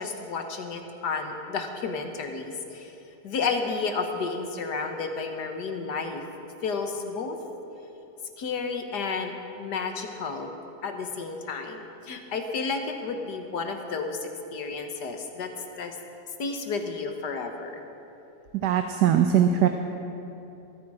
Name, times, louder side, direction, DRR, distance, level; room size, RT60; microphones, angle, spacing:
voice 1, 0.0-2.9 3.2-6.2 6.6-7.4 8.4-10.5 10.8-15.5 15.8-16.0 16.4-17.8, left 4 dB, 75° left, 5 dB, 1.8 m, -31 dB
voice 2, 18.6-19.7, right 9 dB, 75° right, 6 dB, 1.3 m, -20 dB
20.5 x 14.0 x 4.9 m, 3.0 s
omnidirectional pair, 1.8 m